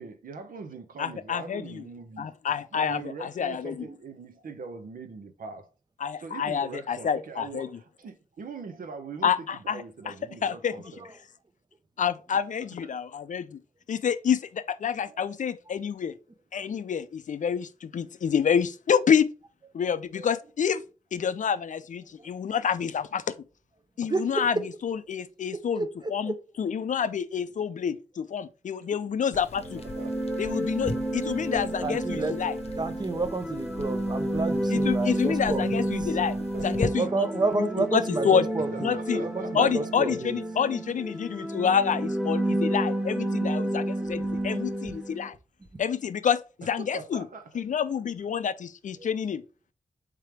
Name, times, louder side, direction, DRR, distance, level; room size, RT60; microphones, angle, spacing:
voice 1, 0.0-2.4 2.7-5.7 6.2-11.1 12.3-12.4 28.8-29.0 29.3-29.4 29.8-30.2 31.3-31.5 36.2-36.7 38.7-39.9 40.5-40.6 46.8-47.5, right 4 dB, 75° right, 0.8 m, -42 dB
voice 2, 1.0-1.8 2.2-3.9 6.0-7.7 9.2-9.8 10.4-10.8 12.0-13.6 13.9-16.1 16.5-19.3 19.7-20.8 21.1-23.3 24.0-24.6 24.8-29.8 30.4-32.5 34.7-36.3 36.6-37.3 37.6-38.5 38.8-39.2 39.5-45.4 45.8-47.3 47.5-49.4, left 7 dB, 60° left, 0.4 m, -28 dB
voice 3, 24.1-24.5 25.7-26.3 31.8-32.5 32.8-36.1 37.0-40.4 44.3-44.4 45.7-45.8 49.0-49.1, right 3 dB, 30° right, 0.7 m, -30 dB
sound 1, 29.3-36.9, left 3 dB, 45° left, 0.8 m, -39 dB
sound 2, 29.6-45.3, right 1 dB, 5° right, 1.0 m, -30 dB
3.7 x 3.2 x 4.5 m
cardioid pair, 45°, 15 cm